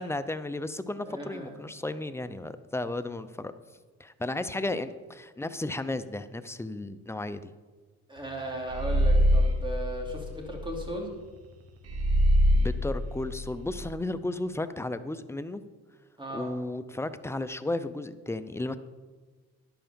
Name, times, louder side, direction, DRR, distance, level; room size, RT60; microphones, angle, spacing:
voice 1, 0.0-3.5 4.0-7.5 12.5-15.6 16.3-18.8, left 2 dB, 10° left, 11 dB, 0.5 m, -34 dB
voice 2, 1.0-1.6 8.1-11.1 16.2-16.5, right 1 dB, 15° right, 0 dB, 2.8 m, -36 dB
sound 1, 8.7-10.8 11.9-13.9, equal, 55° right, 1.5 m, -24 dB
11.0 x 5.8 x 6.9 m, 1.4 s
cardioid pair, 90°, 30 cm